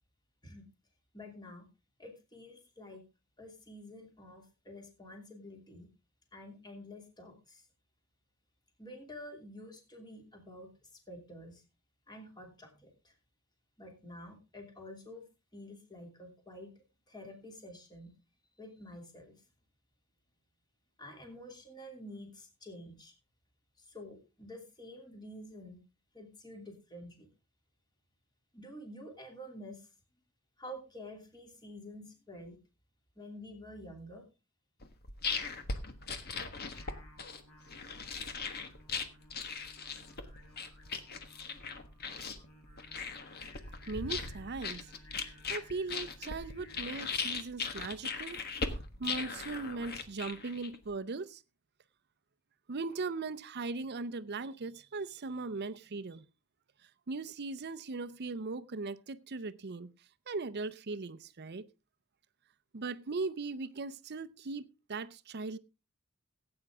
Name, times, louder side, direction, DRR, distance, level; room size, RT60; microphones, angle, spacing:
voice 1, 1.1-1.7 2.0-3.0 3.4-5.9 6.3-7.7 8.8-11.6 12.1-13.2 13.8-18.1 18.6-19.4 21.0-23.1 23.8-25.8 26.1-27.3 28.5-29.9 30.6-32.6 33.2-34.3, left 1 dB, 20° left, 2.8 m, -49 dB
sound 1, 34.8-50.9, left 4 dB, 45° left, 1.4 m, -39 dB
Singing, 36.7-46.8, left 1 dB, 75° left, 4.4 m, -59 dB
voice 2, 43.8-44.9 45.5-48.4 49.0-51.4 52.7-56.2 57.1-59.9 60.3-61.7 62.7-65.6, right 3 dB, 50° right, 0.6 m, -39 dB
17.0 x 8.8 x 3.5 m
head